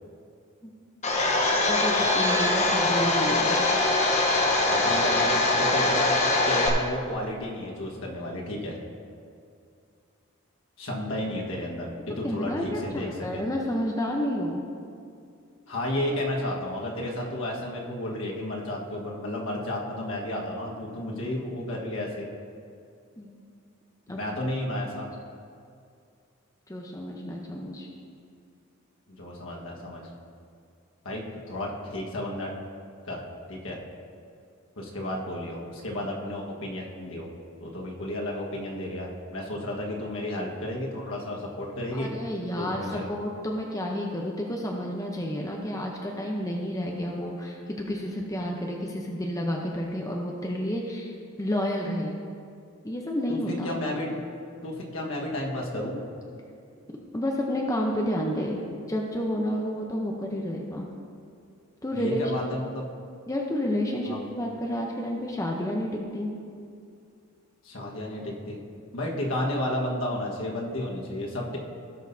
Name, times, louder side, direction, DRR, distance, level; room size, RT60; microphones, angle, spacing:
Domestic sounds home sounds, 1.0-6.7, left 2 dB, 35° left, 0.9 m, -23 dB
voice 1, 1.5-3.7 12.2-14.6 23.2-23.3 24.1-24.2 26.7-27.9 41.9-51.1 51.4-52.2 52.8-53.7 57.1-60.9 61.8-62.5 63.3-66.3, equal, 15° left, -1 dB, 0.7 m, -30 dB
voice 2, 4.7-6.1 6.5-8.8 10.8-13.4 15.7-22.3 24.1-25.1 29.1-30.0 31.0-32.5 33.0-33.2 33.5-33.8 34.8-37.3 37.6-42.1 42.6-43.1 53.3-54.2 54.6-56.0 61.9-62.9 64.0-64.2 67.6-68.6 68.9-71.6, left 1 dB, 65° left, -2 dB, 1.5 m, -32 dB
17.5 x 6.4 x 2.7 m, 2.4 s
head